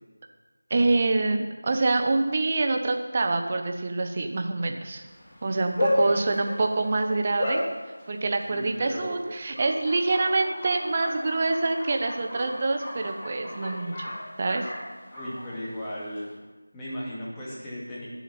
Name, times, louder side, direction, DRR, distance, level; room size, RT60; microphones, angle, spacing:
voice 1, 0.7-5.0 5.4-7.6 8.1-14.1 14.4-14.7, right 3 dB, 30° right, 5 dB, 1.0 m, -26 dB
Bark, 5.0-16.3, left 1 dB, 30° left, 4.3 m, -34 dB
voice 2, 8.5-9.3 15.1-16.3 16.7-18.1, equal, 10° left, -9 dB, 2.2 m, -36 dB
20.0 x 7.1 x 4.4 m, 1.2 s
figure-of-eight pair, 170°, 0 cm